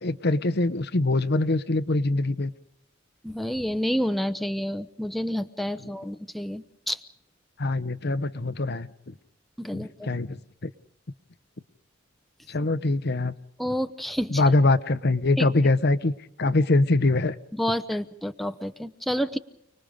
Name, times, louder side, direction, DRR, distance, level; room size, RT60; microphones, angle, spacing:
voice 1, 0.0-2.5 7.6-8.9 9.7-10.7 12.5-13.3 14.3-16.1 16.4-17.3, left 2 dB, 55° left, 13 dB, 0.9 m, -23 dB
voice 2, 3.2-7.0 9.6-10.1 13.6-14.4 15.4-15.5 17.5-19.4, equal, ahead, 9 dB, 0.9 m, -29 dB
30.0 x 20.5 x 5.1 m, 0.77 s
head